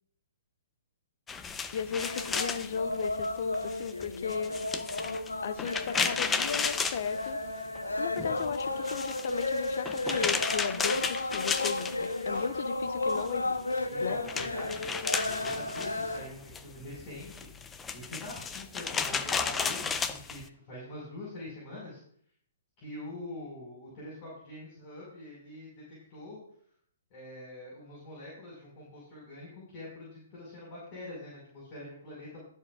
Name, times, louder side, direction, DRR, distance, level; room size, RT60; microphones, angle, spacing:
sound 1, 1.3-7.8 8.1-12.5 12.8-20.4, left 5 dB, 15° left, 0.6 m, -34 dB
voice 1, 1.7-4.5 5.4-7.4 8.0-13.6 14.0-14.2, left 7 dB, 55° left, 13 dB, 0.7 m, -36 dB
sound 2, 1.9-16.2, left 2 dB, 85° left, 1.0 m, -34 dB
voice 2, 13.9-15.0 15.2-17.5 17.9-22.0 22.8-26.4 27.1-32.4, left 1 dB, 35° left, -5 dB, 5.0 m, -44 dB
20.0 x 7.3 x 2.4 m, 0.62 s
figure-of-eight pair, 125°, 0 cm